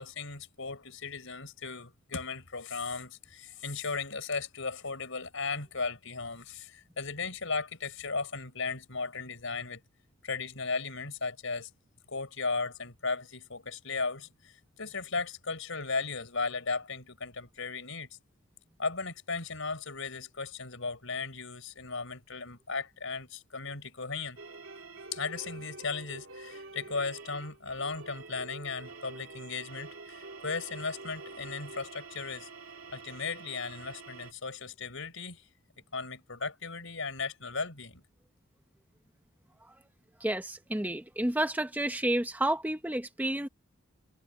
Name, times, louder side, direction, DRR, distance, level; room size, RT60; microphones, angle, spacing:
voice 1, 0.0-9.8 10.2-11.7 12.1-18.1 18.8-24.4 25.1-32.5 32.9-35.5 35.9-38.0, left 4 dB, 70° left, 4.5 m, -36 dB
sound 1, 24.4-34.3, right 3 dB, 70° right, 3.1 m, -47 dB
voice 2, 40.2-43.5, right 1 dB, 10° right, 0.8 m, -30 dB
head